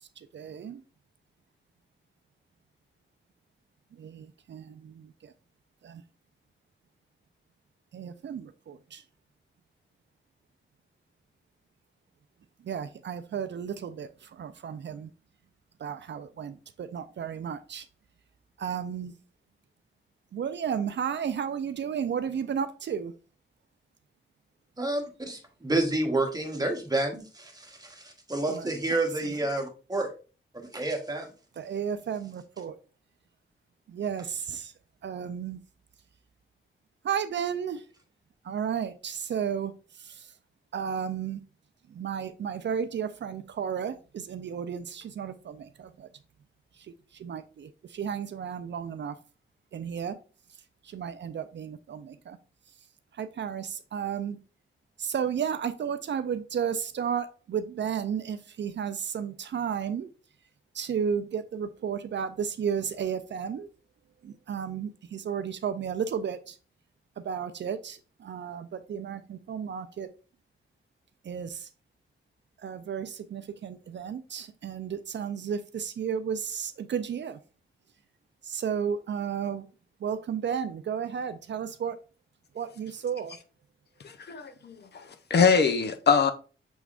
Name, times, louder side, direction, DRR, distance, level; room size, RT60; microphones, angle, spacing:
voice 1, 0.3-0.8 3.9-5.3 5.8-6.0 7.9-9.0 12.6-15.1 15.8-17.9 18.6-19.1 20.3-23.1 28.5-28.7 29.2-29.4 31.6-32.8 33.9-34.7 35.0-35.6 37.0-37.8 38.4-40.3 40.7-41.4 41.9-46.1 47.1-49.2 49.7-50.2 50.8-52.4 53.2-54.4 55.0-60.1 60.7-63.7 64.2-66.6 67.2-70.1 71.2-71.7 72.6-77.4 78.4-79.7 80.0-82.0 82.5-83.4, right 7 dB, 60° right, 0.4 m, -33 dB
voice 2, 24.8-30.1 30.5-31.3, right 2 dB, 20° right, 1.0 m, -29 dB
voice 3, 84.0-86.3, left 5 dB, 55° left, 0.5 m, -24 dB
6.1 x 3.4 x 2.4 m
wide cardioid pair, 110°, 21 cm